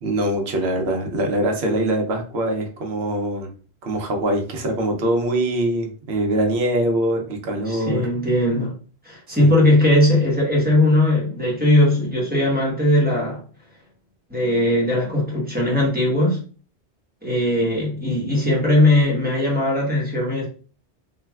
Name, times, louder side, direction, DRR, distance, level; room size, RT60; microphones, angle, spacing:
voice 1, 0.0-3.5 3.8-8.1 9.3-9.6, right 1 dB, 70° right, 3 dB, 0.9 m, -23 dB
voice 2, 7.7-8.8 9.0-13.4 14.3-16.4 17.2-20.5, left 1 dB, 10° right, -4 dB, 1.0 m, -19 dB
3.2 x 2.4 x 2.3 m, 0.39 s
omnidirectional pair, 1.1 m